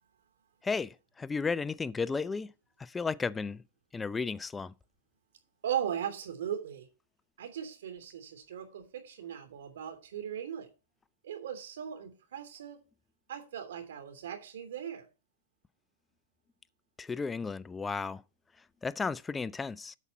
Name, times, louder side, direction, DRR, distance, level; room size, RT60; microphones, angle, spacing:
voice 1, 0.6-2.5 2.8-3.6 3.9-4.7 17.0-18.2 18.8-20.0, left 4 dB, 10° left, 0.3 m, -34 dB
voice 2, 5.6-6.9 7.4-10.7 11.2-12.8 13.3-15.0, right 9 dB, 80° right, 2.9 m, -38 dB
8.3 x 7.1 x 4.3 m
hypercardioid pair, 140°, 0 cm